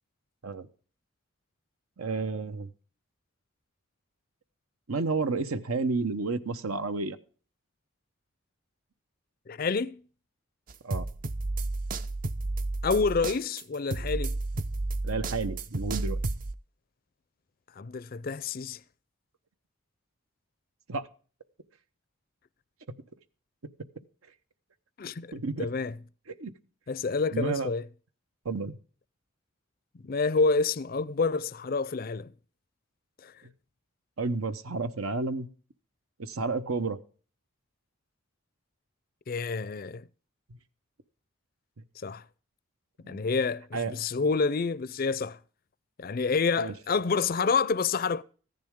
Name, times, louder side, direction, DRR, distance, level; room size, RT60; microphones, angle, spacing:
voice 1, 2.0-2.7 4.9-7.2 10.8-11.0 15.0-16.2 20.9-21.1 25.3-25.7 26.4-26.5 27.3-27.7 28.4-28.8 34.2-35.5 36.2-37.0 43.0-43.2 43.7-44.0 46.6-46.7, right 3 dB, 85° right, 0.9 m, -31 dB
voice 2, 9.5-10.0 12.8-14.3 17.8-18.8 25.0-25.3 25.6-25.9 26.9-27.8 30.0-32.3 33.2-33.3 39.3-40.1 42.0-42.2 43.1-45.4 46.0-48.2, left 4 dB, 45° left, 0.4 m, -28 dB
sound 1, 10.7-16.5, right 2 dB, 40° right, 0.5 m, -32 dB
14.5 x 10.5 x 3.6 m
head